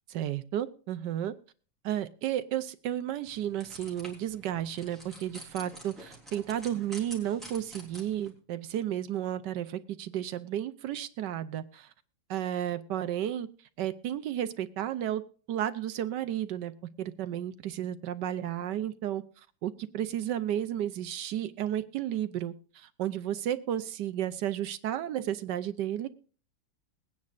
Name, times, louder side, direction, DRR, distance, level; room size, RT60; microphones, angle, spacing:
voice 1, 0.1-1.3 1.8-11.9 12.3-13.5 13.8-15.2 15.5-16.7 17.0-19.2 19.6-26.1, right 11 dB, 70° right, 11 dB, 1.3 m, -33 dB
sound 1, 3.2-8.3, right 1 dB, ahead, 3.6 m, -48 dB
21.5 x 9.5 x 2.5 m, 0.38 s
omnidirectional pair, 2.1 m